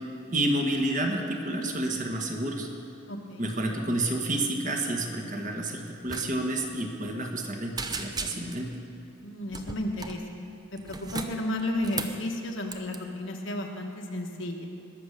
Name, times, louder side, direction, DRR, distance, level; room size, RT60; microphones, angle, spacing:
voice 1, 0.3-2.7 3.4-8.7, right 1 dB, 40° right, 2 dB, 1.4 m, -29 dB
voice 2, 3.1-3.5 9.2-10.2 10.7-14.7, left 1 dB, 65° left, 2 dB, 1.4 m, -33 dB
sound 1, 6.1-6.3 6.5-6.7 7.1-7.5 7.8-8.7 9.5-10.2 10.8-12.2 12.7-13.0, right 4 dB, 20° right, 0.6 m, -36 dB
20.0 x 7.1 x 6.7 m, 2.6 s
head